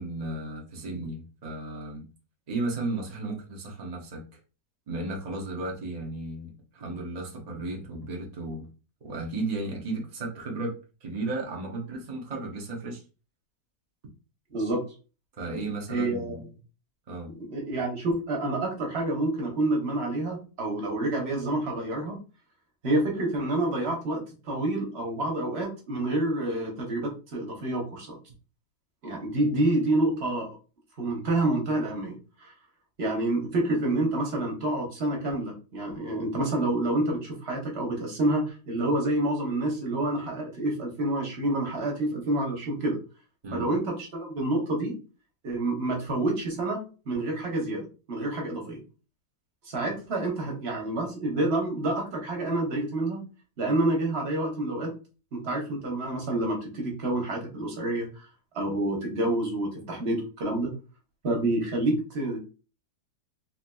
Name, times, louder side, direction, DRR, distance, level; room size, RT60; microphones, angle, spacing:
voice 1, 0.0-2.0 2.5-4.2 4.9-8.7 9.0-13.0 15.4-16.4 17.1-17.3 43.4-43.7, right 2 dB, 65° right, 0 dB, 0.4 m, -34 dB
voice 2, 14.5-14.8 15.9-16.4 17.3-22.2 22.8-28.2 29.0-30.5 31.0-32.5 33.0-43.0 43.5-45.0 45.4-46.8 47.1-48.8 49.7-53.2 53.6-54.9 55.3-58.3 58.5-60.7 61.2-62.4, right 2 dB, 45° right, 0 dB, 1.0 m, -28 dB
3.4 x 2.7 x 2.2 m, 0.33 s
omnidirectional pair, 1.8 m